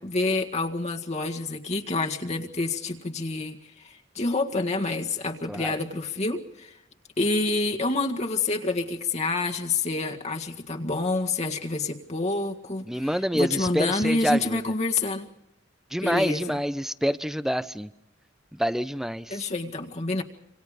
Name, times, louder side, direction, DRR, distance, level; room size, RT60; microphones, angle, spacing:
voice 1, 0.0-6.8 7.2-15.3 16.0-16.6 19.3-20.2, left 3 dB, 35° left, 2 dB, 1.8 m, -28 dB
voice 2, 12.9-14.6 15.9-17.9 18.5-19.4, equal, ahead, 14 dB, 0.8 m, -27 dB
27.0 x 26.0 x 5.0 m, 0.85 s
head